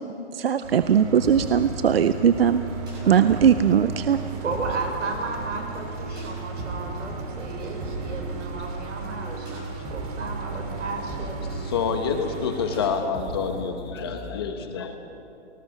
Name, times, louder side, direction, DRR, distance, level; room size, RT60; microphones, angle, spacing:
voice 1, 0.3-2.6 3.1-4.2, right 8 dB, 55° right, 11 dB, 0.7 m, -19 dB
sound 1, 0.6-12.8, right 6 dB, 30° right, 2.6 m, -36 dB
sound 2, 1.2-14.4, right 1 dB, 10° right, 6.4 m, -37 dB
voice 2, 3.0-3.6 4.4-11.6, right 3 dB, 85° right, 2 dB, 5.9 m, -34 dB
voice 3, 11.5-15.0, left 6 dB, 20° left, 6 dB, 1.0 m, -28 dB
28.5 x 19.0 x 6.0 m, 2.7 s
hypercardioid pair, 175°, 36 cm